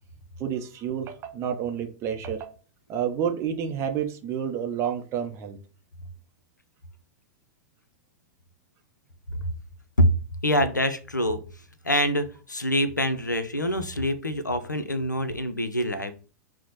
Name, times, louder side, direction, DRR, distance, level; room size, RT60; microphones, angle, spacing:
voice 1, 0.4-2.5 2.9-5.6, right 8 dB, 30° right, 5 dB, 0.5 m, -29 dB
voice 2, 10.4-11.4 11.8-16.1, equal, 85° left, 12 dB, 0.4 m, -25 dB
2.9 x 2.0 x 4.0 m, 0.37 s
figure-of-eight pair, 95°, 10 cm